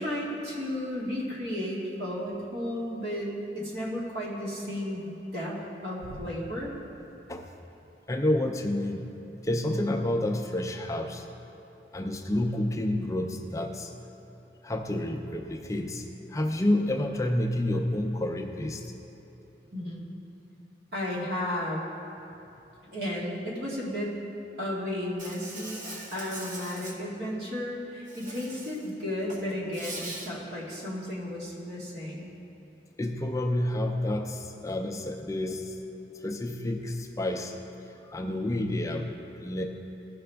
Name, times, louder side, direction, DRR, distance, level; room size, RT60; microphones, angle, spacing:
voice 1, 0.0-6.7 19.7-20.1 20.9-21.9 22.8-24.2 24.6-25.8 26.1-32.3, left 1 dB, 75° right, -5 dB, 1.9 m, -33 dB
voice 2, 8.1-9.1 9.4-11.3 11.9-13.9 14.6-18.8 33.0-35.7 36.2-37.6 38.0-39.6, left 1 dB, 20° left, 3 dB, 0.4 m, -29 dB
Insect, 25.2-27.0 28.1-28.9 29.2-30.3, right 2 dB, 45° right, 0.9 m, -41 dB
15.0 x 5.9 x 3.4 m, 2.9 s
head